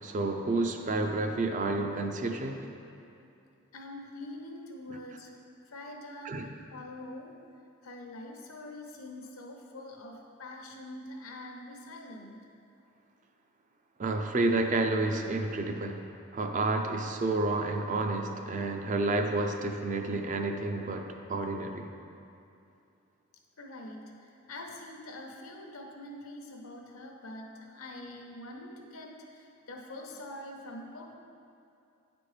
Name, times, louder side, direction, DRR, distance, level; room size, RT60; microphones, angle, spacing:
voice 1, 0.0-2.7 6.2-6.4 14.0-21.9, right 2 dB, 35° right, 5 dB, 0.4 m, -30 dB
voice 2, 3.7-5.3 5.7-7.4 7.8-12.5 23.6-31.1, left 1 dB, 85° left, 1 dB, 0.8 m, -44 dB
9.9 x 4.3 x 3.2 m, 2.6 s
head